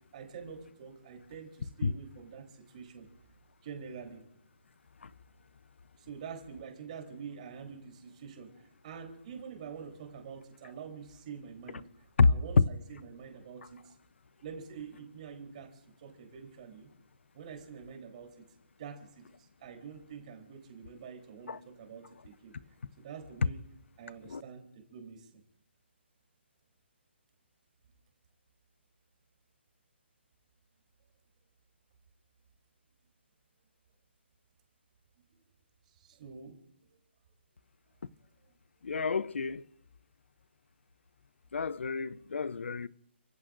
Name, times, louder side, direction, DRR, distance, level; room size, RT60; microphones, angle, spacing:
voice 1, 0.1-3.1 3.6-4.2 6.0-8.5 8.8-11.9 12.2-13.9 14.4-15.7 16.0-16.9 17.3-18.5 18.8-19.3 19.6-22.5 23.0-23.6 24.0-25.4 36.0-36.6, right 6 dB, 35° right, 3.7 m, -46 dB
voice 2, 38.8-39.6 41.5-42.9, left 4 dB, 80° left, 0.7 m, -28 dB
29.5 x 15.5 x 2.6 m
hypercardioid pair, 160°, 6 cm